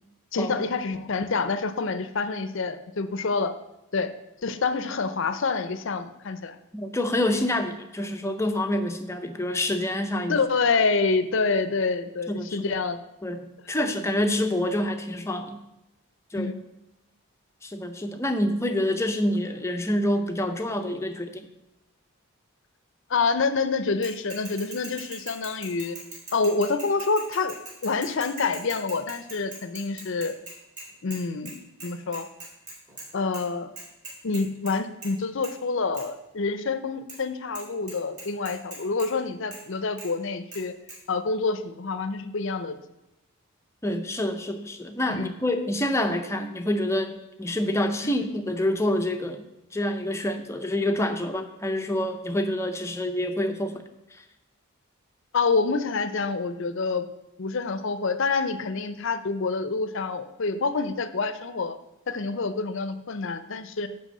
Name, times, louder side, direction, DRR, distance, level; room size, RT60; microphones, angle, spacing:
voice 1, 0.3-3.5 3.9-4.1 4.4-6.6 10.3-13.0 16.4-16.6 23.1-26.0 26.3-27.5 27.8-30.3 31.0-32.3 33.1-33.7 34.2-40.7 41.1-42.8 45.1-45.3 48.0-48.1 55.3-57.1 57.4-61.7 62.1-63.9, left 4 dB, 60° left, 11 dB, 0.6 m, -27 dB
voice 2, 6.7-10.4 12.3-12.7 13.2-15.6 16.3-16.5 17.6-21.5 43.8-49.4 49.7-53.7, left 1 dB, 15° left, 6 dB, 0.5 m, -27 dB
Bicycle / Mechanisms, 24.0-31.2 31.5-31.6 31.8-33.1 33.3-33.4 33.8-34.7 35.0-35.2 35.4-35.5 35.9-36.0 37.1-37.2 37.5-37.6 37.9-39.1 39.5-39.6 40.0-40.1 40.5-40.6 40.9-41.0, right 2 dB, 35° right, 3.0 m, -40 dB
10.5 x 3.5 x 6.6 m, 0.93 s
head